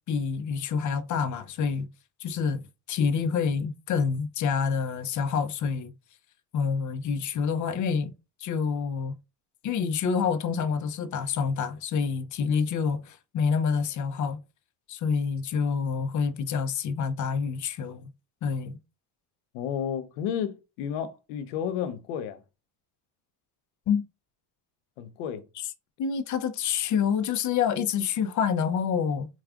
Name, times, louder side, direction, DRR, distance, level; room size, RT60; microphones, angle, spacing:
voice 1, 0.1-1.9 2.2-2.6 2.9-5.9 6.5-8.1 8.4-9.1 9.6-14.4 14.9-18.1 18.4-18.8 23.9-24.0 26.0-29.3, left 6 dB, 45° left, 0.6 m, -27 dB
voice 2, 19.5-22.4 25.0-25.4, left 8 dB, 90° left, 0.7 m, -32 dB
4.8 x 2.3 x 2.4 m
supercardioid pair, 95°, 44 cm